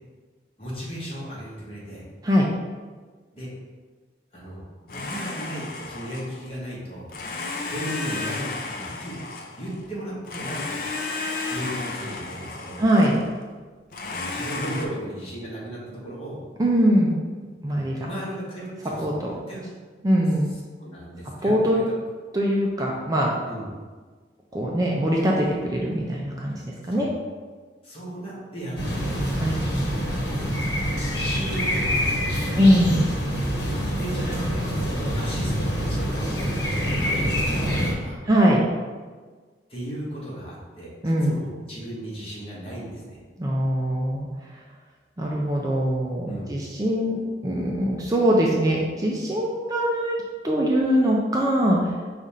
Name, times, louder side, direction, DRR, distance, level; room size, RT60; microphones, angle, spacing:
voice 1, 0.6-2.0 3.3-3.5 4.3-7.1 7.7-10.9 11.5-12.8 14.0-16.4 17.7-19.1 19.5-19.6 20.8-21.8 23.5-23.7 26.9-27.1 27.8-29.2 29.7-30.6 31.1-33.0 33.7-34.7 35.1-38.2 39.7-43.2 46.3-46.5, right 1 dB, 30° left, -5 dB, 1.2 m, -36 dB
Domestic sounds home sounds, 4.9-6.5 7.1-9.9 10.3-13.3 13.9-14.9, left 3 dB, 50° left, 0.5 m, -33 dB
voice 2, 12.8-13.2 16.6-17.1 17.6-18.1 19.0-19.3 20.0-20.5 21.4-21.8 22.3-23.3 24.5-26.6 26.9-27.1 29.4-29.6 32.6-33.1 38.3-38.6 41.0-41.3 43.4-44.3 45.2-47.2 47.4-50.2 50.4-51.9, equal, 20° right, -2 dB, 0.4 m, -22 dB
sound 1, 28.8-37.9, equal, 85° left, 1.1 m, -26 dB
5.2 x 2.5 x 4.1 m, 1.5 s
head